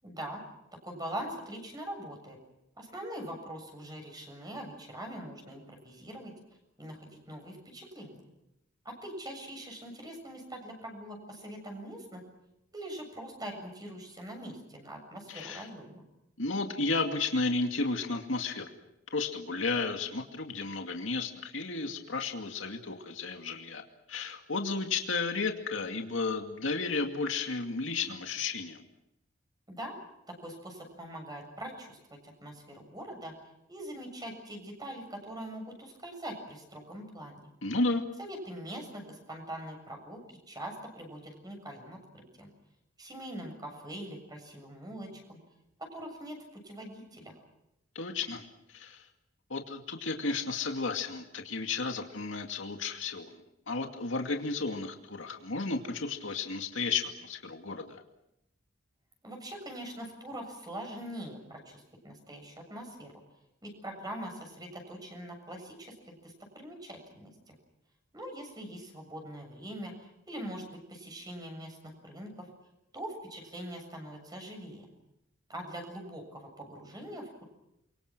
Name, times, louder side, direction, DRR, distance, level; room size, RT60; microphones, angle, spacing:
voice 1, 0.0-0.4 0.8-2.4 2.8-6.3 6.8-8.2 8.8-12.2 12.7-16.0 29.7-30.0 30.3-32.0 32.2-33.3 33.7-37.4 38.2-42.5 43.0-45.4 45.8-47.3 59.2-63.1 63.6-67.5 68.1-72.5 72.9-74.9 75.5-77.4, right 1 dB, 20° right, 4 dB, 7.3 m, -43 dB
voice 2, 15.3-15.7 16.4-18.7 19.1-23.8 24.1-28.8 37.6-38.0 47.9-48.4 48.7-49.1 49.5-53.3 53.7-58.0, left 3 dB, 85° left, 3 dB, 2.4 m, -33 dB
29.5 x 24.0 x 6.2 m, 0.84 s
head